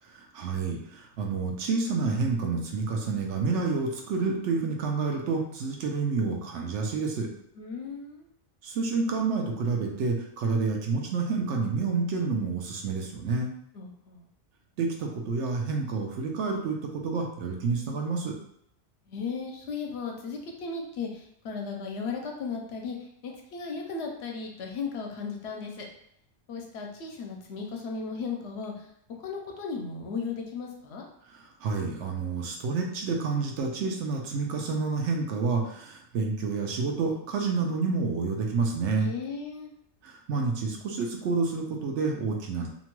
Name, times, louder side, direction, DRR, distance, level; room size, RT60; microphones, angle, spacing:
voice 1, 0.1-7.3 8.6-13.5 14.8-18.3 31.3-39.1 40.0-42.7, right 4 dB, 85° right, 1 dB, 0.9 m, -29 dB
voice 2, 7.6-8.3 13.7-14.3 19.1-25.9 26.5-28.9 29.2-31.1 39.0-39.7, left 5 dB, 70° left, 1 dB, 0.8 m, -36 dB
2.8 x 2.1 x 3.0 m, 0.73 s
omnidirectional pair, 1.2 m